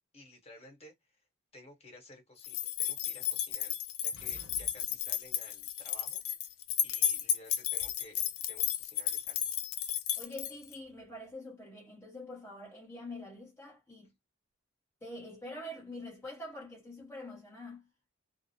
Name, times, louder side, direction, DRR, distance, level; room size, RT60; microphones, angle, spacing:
voice 1, 0.1-1.2 1.5-6.2 6.8-9.5, left 1 dB, 30° left, 1.2 m, -55 dB
sound 1, 2.4-10.8, left 11 dB, 85° left, 0.4 m, -33 dB
sound 2, 4.1-5.4, right 1 dB, 65° left, 0.9 m, -53 dB
voice 2, 10.2-14.1 15.0-17.9, left 1 dB, 10° left, 0.7 m, -45 dB
2.5 x 2.0 x 2.7 m
head